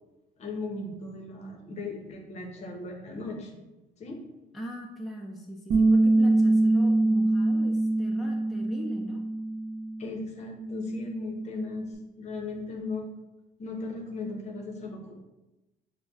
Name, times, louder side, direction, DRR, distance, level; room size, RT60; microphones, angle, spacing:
voice 1, 0.4-3.6 4.0-4.2 10.0-13.1 13.6-15.2, left 3 dB, 40° left, 2 dB, 0.7 m, -37 dB
voice 2, 4.5-9.2, equal, ahead, -1 dB, 0.3 m, -40 dB
Bass guitar, 5.7-10.0 10.3-11.9, right 2 dB, 55° right, 0.5 m, -24 dB
5.1 x 2.0 x 2.3 m, 1.0 s
cardioid pair, 110°, 17 cm